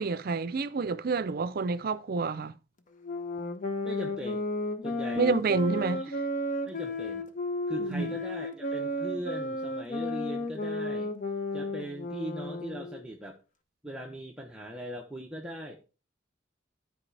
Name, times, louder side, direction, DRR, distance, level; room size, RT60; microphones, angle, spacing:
voice 1, 0.0-2.5 5.2-6.0 7.8-8.1, right 4 dB, 50° right, 0.5 m, -28 dB
sound 1, 3.0-13.0, left 1 dB, 45° left, 0.9 m, -33 dB
voice 2, 3.8-4.5 4.8-5.4 6.0-6.1 6.7-7.3 7.7-11.1 11.5-13.4 13.8-15.8, right 1 dB, 5° right, 0.8 m, -40 dB
12.5 x 4.7 x 3.3 m
head